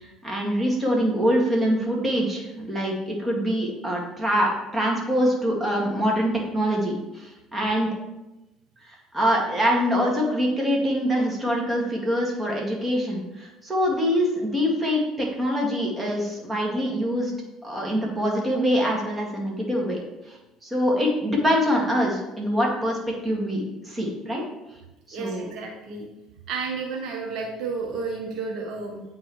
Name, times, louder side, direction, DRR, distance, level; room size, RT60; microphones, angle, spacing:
voice 1, 0.2-7.9 8.9-17.3 17.6-20.0 20.3-24.4 25.1-25.5, equal, 15° right, -2 dB, 2.0 m, -24 dB
voice 2, 25.1-26.1 26.5-29.0, right 4 dB, 65° right, 1 dB, 1.0 m, -31 dB
8.8 x 3.9 x 3.1 m, 0.99 s
supercardioid pair, 75°, 0 cm